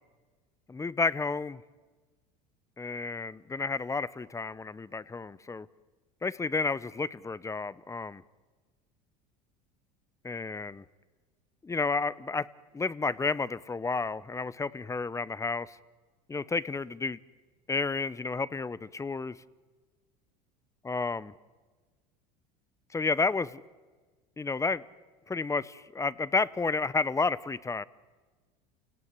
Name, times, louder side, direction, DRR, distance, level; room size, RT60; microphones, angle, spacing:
voice 1, 0.7-1.6 2.8-5.7 6.2-8.2 10.2-10.8 11.6-12.5 12.7-15.8 16.3-17.2 17.7-19.3 20.8-21.3 22.9-23.6 24.4-24.8 25.3-27.8, left 4 dB, 15° left, 20 dB, 0.7 m, -31 dB
28.5 x 18.0 x 9.6 m, 1.4 s
hypercardioid pair, 90°, 21 cm